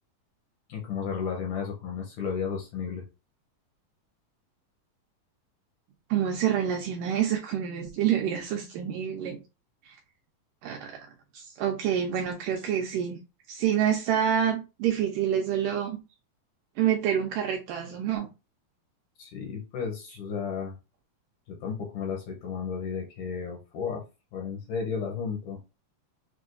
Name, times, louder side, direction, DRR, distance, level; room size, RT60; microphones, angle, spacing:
voice 1, 0.7-3.0 19.2-20.7 21.5-24.0 24.3-25.6, left 6 dB, 75° left, 1.9 m, -33 dB
voice 2, 6.1-9.4 9.9-10.0 10.6-11.1 11.3-13.2 13.5-16.0 16.8-18.3, right 9 dB, 80° right, 1.9 m, -27 dB
6.2 x 2.2 x 2.5 m
omnidirectional pair, 4.3 m